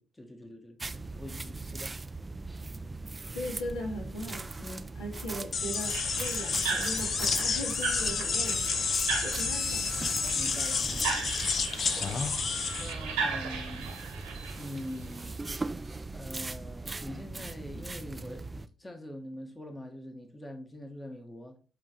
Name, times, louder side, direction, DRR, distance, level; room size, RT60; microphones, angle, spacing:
voice 1, 0.0-2.0 10.3-11.3 11.9-12.3 12.8-13.9 14.6-15.4 16.1-18.4 18.8-21.6, left 1 dB, 20° left, 1.4 m, -44 dB
sound 1, 0.8-18.7, right 3 dB, 25° right, 0.5 m, -40 dB
voice 2, 3.3-8.6 9.2-9.9, equal, 75° left, 2.7 m, -38 dB
sound 2, 5.5-12.9, left 5 dB, 50° left, 0.8 m, -30 dB
sound 3, 5.9-15.6, right 5 dB, 80° right, 1.6 m, -37 dB
8.3 x 3.6 x 4.6 m
hypercardioid pair, 45°, 0 cm